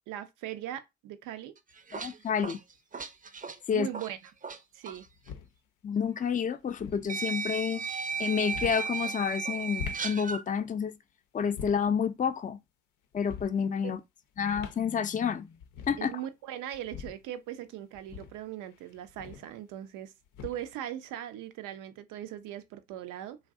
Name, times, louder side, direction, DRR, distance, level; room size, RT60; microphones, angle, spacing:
voice 1, 0.1-1.5 3.7-4.2 4.7-5.1 13.8-14.0 16.0-20.1 20.4-23.4, right 11 dB, 80° right, 0.5 m, -39 dB
sound 1, 1.6-4.6 4.8-5.0 6.2-6.3 7.1-10.4, right 5 dB, 25° right, 0.5 m, -35 dB
sound 2, 1.7-1.8 3.2-3.7 4.9-5.6 6.6-7.1 8.4-8.9 9.6-10.1 11.4-12.0 13.1-13.6 14.4-14.9 15.2-15.3 15.5-16.1 16.7-17.3 17.9-19.6 20.3-20.8, left 7 dB, 80° left, 0.5 m, -43 dB
voice 2, 1.9-2.6 3.7-3.9 5.8-11.0 11.3-12.6 13.1-14.0 14.4-15.5 15.9-16.1, left 7 dB, 25° left, 0.4 m, -29 dB
2.5 x 2.1 x 3.5 m
hypercardioid pair, 45°, 31 cm